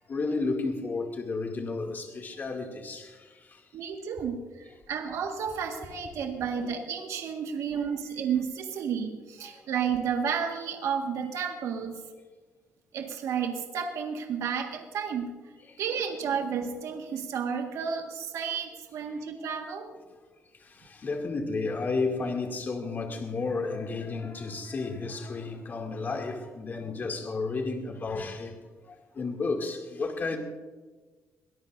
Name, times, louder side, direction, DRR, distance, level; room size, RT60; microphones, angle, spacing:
voice 1, 0.0-3.7 9.4-9.6 15.7-15.8 19.1-19.2 20.5-30.4, left 3 dB, 40° left, 2.5 m, -32 dB
voice 2, 3.7-12.0 12.9-15.3 15.8-19.9, right 7 dB, 75° right, 1.7 m, -32 dB
23.0 x 18.0 x 2.6 m
cardioid pair, 135°, 5 cm